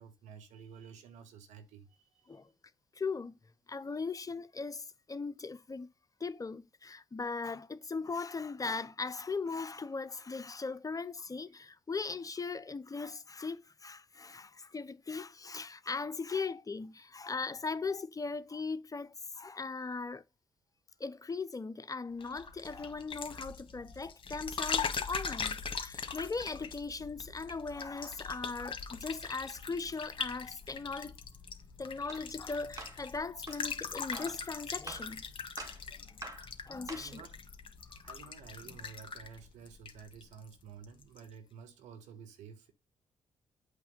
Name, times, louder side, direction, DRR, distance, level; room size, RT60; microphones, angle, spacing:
voice 1, 0.0-2.4 19.4-19.6 37.0-37.4 38.0-42.7, right 7 dB, 75° right, 1.3 m, -52 dB
voice 2, 2.9-3.4 3.7-5.9 6.2-20.2 21.0-31.2 31.8-35.3 36.7-37.2 37.9-38.0, left 4 dB, 30° left, 0.7 m, -39 dB
sound 1, 22.2-40.5 40.8-41.3, left 5 dB, 45° left, 1.7 m, -41 dB
sound 2, 32.1-32.3 32.8-33.0 33.5-33.6 34.1-34.4 34.9-35.1 35.6-35.8 36.2-36.5 36.9-37.2, right 2 dB, 25° right, 2.0 m, -45 dB
8.1 x 3.2 x 5.4 m
hypercardioid pair, 45°, 12 cm